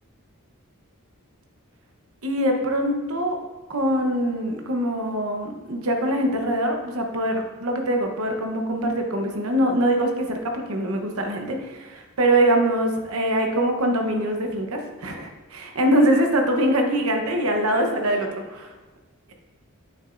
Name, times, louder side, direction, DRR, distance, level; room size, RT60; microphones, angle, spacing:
voice 1, 2.2-3.4 3.7-18.7, right 1 dB, 85° right, 3 dB, 1.0 m, -23 dB
8.9 x 6.7 x 2.6 m, 1.3 s
head